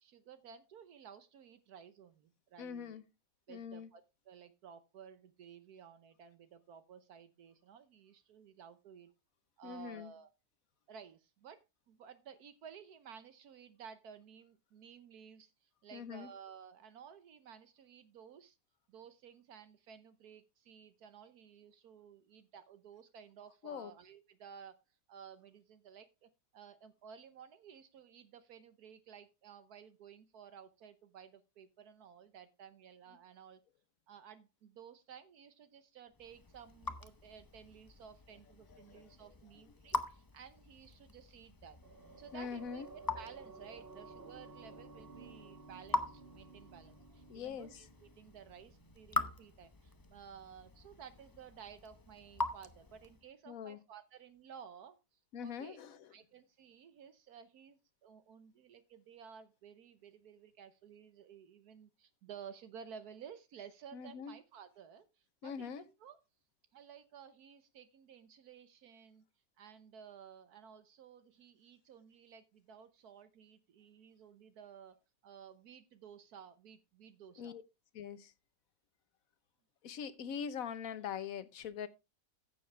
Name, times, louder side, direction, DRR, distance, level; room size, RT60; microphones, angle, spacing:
voice 1, 0.0-3.0 3.5-9.1 9.6-10.3 10.9-18.6 18.9-24.8 25.1-33.6 34.1-41.8 42.2-42.8 43.1-55.8 56.1-66.2 66.7-69.3 69.6-75.0 75.2-77.6, right 7 dB, 75° right, 1.4 m, -55 dB
voice 2, 2.6-3.0 3.5-3.9 9.6-10.1 15.9-16.3 23.6-23.9 38.7-39.1 42.3-42.9 47.3-47.8 53.5-53.8 55.3-56.1 63.9-64.3 65.4-65.8 77.4-77.6 77.9-78.3 79.8-81.9, left 7 dB, 65° left, 1.3 m, -43 dB
Raindrop / Drip, 36.1-53.3, left 2 dB, 30° left, 0.4 m, -44 dB
sound 1, 41.8-50.5 50.7-50.9, right 3 dB, 40° right, 1.6 m, -55 dB
15.0 x 7.2 x 3.3 m
omnidirectional pair, 1.7 m